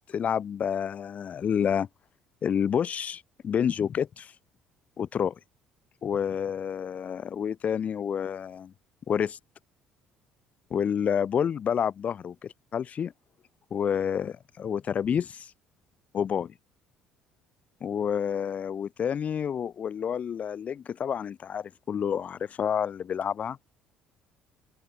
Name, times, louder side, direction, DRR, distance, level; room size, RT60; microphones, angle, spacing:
voice 1, 0.1-1.9 2.4-4.3 5.0-5.4 6.0-8.7 9.1-9.4 10.7-13.1 13.7-15.5 16.1-16.5 17.8-23.6, left 8 dB, 40° left, 0.5 m, -29 dB
open air
figure-of-eight pair, 55°, 4 cm